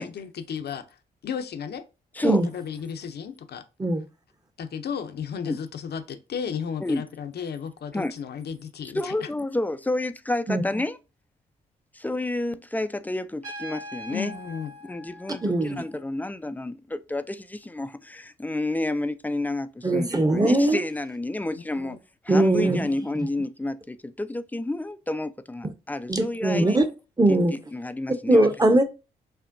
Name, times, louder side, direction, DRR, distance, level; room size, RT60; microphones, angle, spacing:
voice 1, 0.0-1.8 2.2-3.6 4.6-9.3 14.1-14.7 21.7-22.0, left 7 dB, 55° left, 0.7 m, -34 dB
voice 2, 8.9-11.0 11.9-14.3 14.9-22.0 22.3-26.8 27.3-27.4 27.7-28.5, left 2 dB, 10° left, 0.4 m, -30 dB
Trumpet, 13.4-16.1, equal, 85° right, 1.5 m, -41 dB
voice 3, 15.4-15.8 19.8-20.8 22.3-22.9 23.2-23.3 26.1-26.9 27.2-27.5 28.3-28.8, right 1 dB, 20° right, 0.9 m, -20 dB
5.7 x 2.1 x 2.6 m
hypercardioid pair, 40°, 20 cm